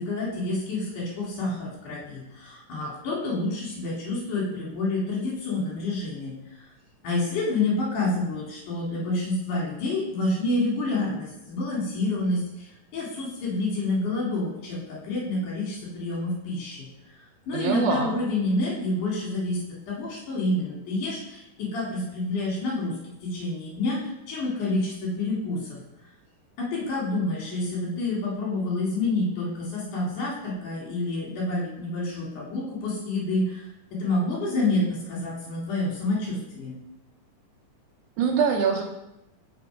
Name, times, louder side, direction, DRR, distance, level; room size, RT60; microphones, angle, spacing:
voice 1, 0.0-6.6 7.0-17.2 17.5-19.6 19.9-22.9 23.2-25.8 26.6-36.7, left 2 dB, 70° left, -4 dB, 3.5 m, -28 dB
voice 2, 17.5-18.2 38.2-38.8, right 6 dB, 75° right, 2 dB, 2.0 m, -23 dB
6.9 x 5.1 x 4.9 m, 0.91 s
omnidirectional pair, 3.8 m